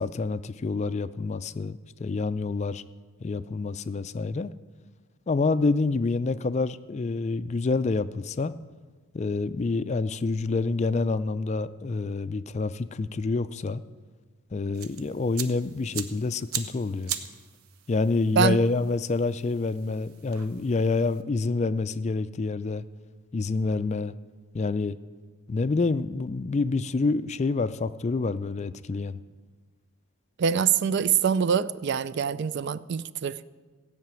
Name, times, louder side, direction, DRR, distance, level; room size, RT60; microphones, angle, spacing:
voice 1, 0.0-2.8 3.2-4.5 5.3-8.5 9.1-13.8 14.5-17.2 17.9-22.8 23.3-24.1 24.5-25.0 25.5-29.2, left 3 dB, 30° left, 14 dB, 0.3 m, -27 dB
sound 1, 14.7-21.2, right 9 dB, 90° right, 0.9 m, -40 dB
voice 2, 30.4-33.4, right 7 dB, 50° right, 16 dB, 0.4 m, -24 dB
16.0 x 5.8 x 9.0 m, 1.4 s
head